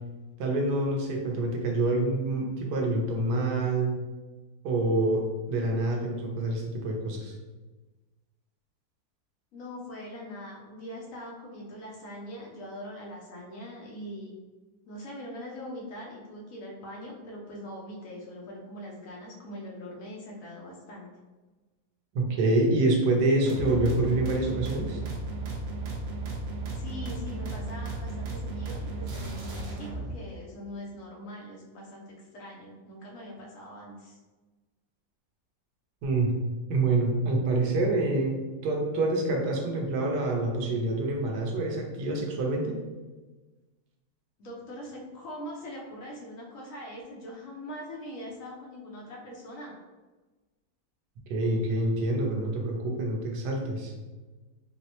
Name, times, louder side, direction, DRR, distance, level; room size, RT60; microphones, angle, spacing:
voice 1, 0.4-3.9 4.6-5.2 5.5-7.3 22.1-25.0 36.0-36.3 36.7-42.7 51.3-53.9, right 2 dB, 90° right, 1 dB, 1.3 m, -26 dB
voice 2, 9.5-14.4 14.9-21.1 26.7-34.2 44.4-49.8, left 1 dB, 65° left, -2 dB, 0.9 m, -42 dB
sound 1, 23.5-30.1, right 2 dB, 65° right, 0.6 m, -35 dB
4.2 x 2.1 x 2.8 m, 1.2 s
omnidirectional pair, 1.7 m